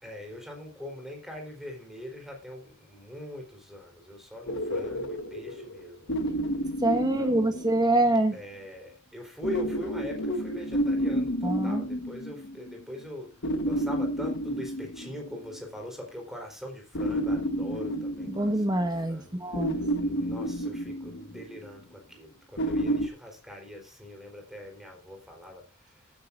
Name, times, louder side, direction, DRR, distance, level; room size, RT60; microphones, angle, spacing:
voice 1, 0.0-6.0 6.9-7.6 8.3-13.3 13.6-18.8 19.1-19.4 20.0-25.7, equal, ahead, 4.0 m, -42 dB
sound 1, 4.5-8.1 9.4-12.7 13.4-15.5 16.9-19.0 19.5-21.6 22.6-23.1, equal, 55° left, 1.4 m, -30 dB
voice 2, 6.8-8.3 11.4-11.8 18.3-19.8, right 1 dB, 20° right, 1.5 m, -25 dB
16.0 x 9.8 x 2.6 m
head